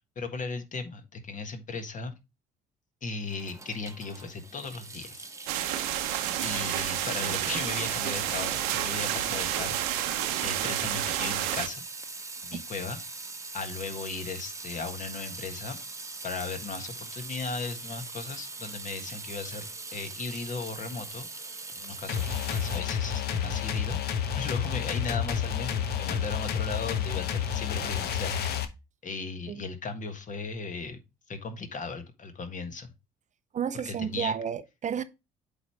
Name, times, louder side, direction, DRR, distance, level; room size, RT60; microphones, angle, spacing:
voice 1, 0.1-2.1 3.0-5.3 6.4-9.8 10.4-11.8 12.4-13.2 13.5-15.8 16.2-28.7 29.0-31.0 31.3-32.9 33.8-34.3, left 4 dB, 40° left, 1.5 m, -37 dB
Water tap faucet / Sink (filling or washing) / Drip, 3.2-22.8, right 3 dB, 15° right, 1.1 m, -41 dB
sound 1, 5.5-11.7, right 12 dB, 75° right, 0.8 m, -30 dB
sound 2, 22.1-28.6, left 8 dB, 60° left, 1.0 m, -30 dB
voice 2, 33.5-35.0, right 8 dB, 40° right, 0.6 m, -31 dB
8.0 x 3.7 x 4.6 m
hypercardioid pair, 55°, 19 cm